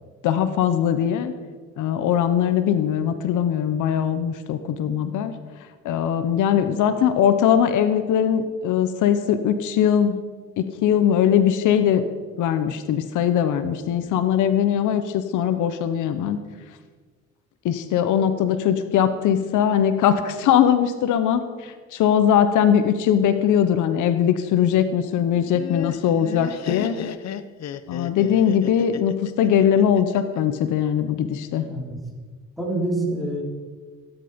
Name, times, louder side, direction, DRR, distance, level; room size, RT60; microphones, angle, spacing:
voice 1, 0.2-1.3 1.8-5.3 5.8-10.2 10.6-12.0 12.4-16.4 17.6-27.0 27.9-31.7, left 9 dB, 85° left, 11 dB, 1.0 m, -21 dB
Laughter, 25.3-30.4, left 9 dB, 60° left, 0.8 m, -34 dB
voice 2, 31.6-32.0 32.6-33.4, right 1 dB, ahead, -2 dB, 4.5 m, -26 dB
17.0 x 10.0 x 5.2 m, 1.4 s
cardioid pair, 90°, 30 cm